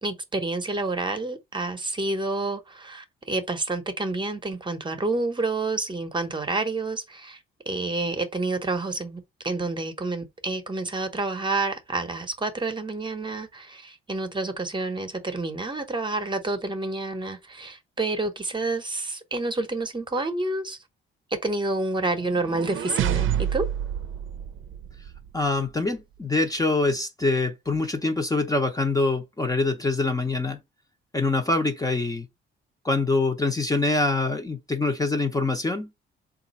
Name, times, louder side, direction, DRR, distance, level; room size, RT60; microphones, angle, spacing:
voice 1, 0.0-7.4 7.7-20.8 21.4-23.7, right 2 dB, 20° right, 0.8 m, -29 dB
sound 1, 22.1-25.3, right 10 dB, 70° right, 0.6 m, -28 dB
voice 2, 25.3-30.6 31.1-32.3 32.8-35.9, left 3 dB, 15° left, 0.7 m, -24 dB
3.7 x 2.5 x 4.0 m
cardioid pair, 95°, 21 cm